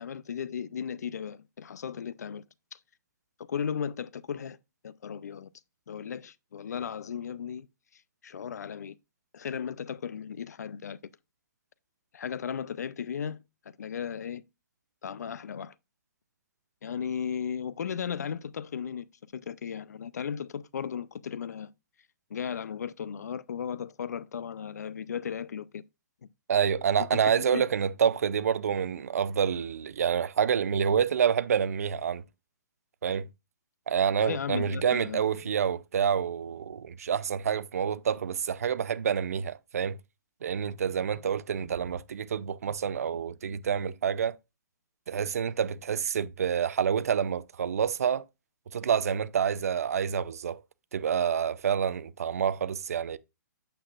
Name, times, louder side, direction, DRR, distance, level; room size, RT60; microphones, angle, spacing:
voice 1, 0.0-2.4 2.7-2.8 3.4-4.6 4.8-5.5 5.9-7.7 7.9-9.0 9.3-11.0 12.1-13.4 13.8-14.4 15.0-15.7 16.8-19.1 19.3-21.7 22.3-25.8 26.2-26.3 27.1-27.7 34.2-35.2, left 7 dB, 60° left, 0.5 m, -36 dB
voice 2, 26.5-32.2 33.0-33.3 33.9-40.0 40.4-44.4 45.1-48.2 48.7-50.6 50.9-53.2, right 7 dB, 50° right, 0.5 m, -28 dB
8.7 x 7.8 x 2.4 m
hypercardioid pair, 175°, 10 cm